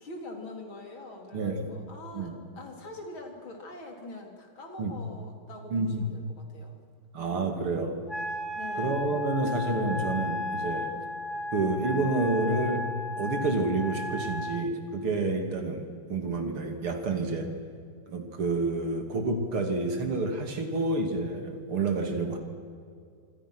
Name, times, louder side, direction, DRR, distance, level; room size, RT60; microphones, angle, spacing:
voice 1, 0.0-6.8 8.5-9.2, left 2 dB, 65° left, 2 dB, 4.3 m, -44 dB
voice 2, 1.3-1.7 2.1-2.3 4.8-4.9 5.7-6.0 7.1-8.0 8.8-10.9 11.5-12.9 13.2-17.5 18.1-22.4, right 3 dB, 80° right, 5 dB, 3.5 m, -29 dB
Wind instrument woodwind instrument, 8.1-14.7, left 1 dB, ahead, 1.9 m, -34 dB
26.5 x 26.5 x 6.2 m, 2.3 s
omnidirectional pair, 2.4 m